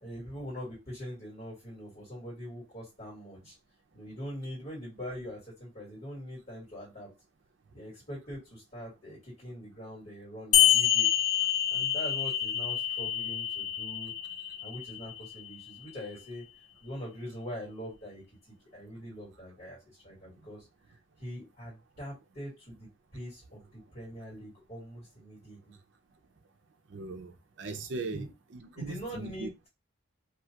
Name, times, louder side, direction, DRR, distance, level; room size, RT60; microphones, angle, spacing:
voice 1, 0.0-3.6 3.9-7.1 7.7-11.1 11.7-14.1 14.6-16.4 16.8-25.8 28.1-28.3 28.7-29.7, equal, 40° left, 1.7 m, -43 dB
sound 1, 10.5-15.5, left 10 dB, 65° left, 0.4 m, -27 dB
voice 2, 26.9-28.3 28.5-29.5, right 3 dB, 60° right, 0.5 m, -39 dB
2.7 x 2.3 x 2.8 m
head